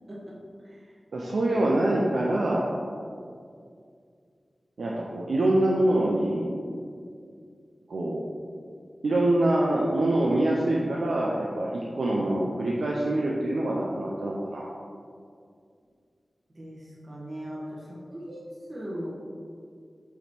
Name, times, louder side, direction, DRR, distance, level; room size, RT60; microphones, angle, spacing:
voice 1, 1.1-2.7 4.8-6.6 7.9-8.2 9.0-14.7, right 1 dB, 85° right, -3 dB, 0.6 m, -25 dB
voice 2, 17.1-17.8 18.1-19.1, equal, 45° right, -5 dB, 1.5 m, -38 dB
8.2 x 3.1 x 4.4 m, 2.3 s
cardioid pair, 45°, 0 cm